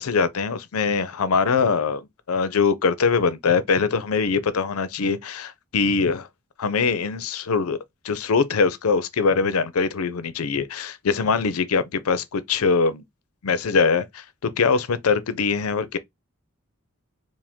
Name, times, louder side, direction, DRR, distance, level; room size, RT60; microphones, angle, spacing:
voice 1, 0.0-6.3 6.6-7.8 8.0-13.0 13.4-16.0, left 5 dB, 75° left, 0.5 m, -22 dB
4.8 x 2.1 x 3.5 m
head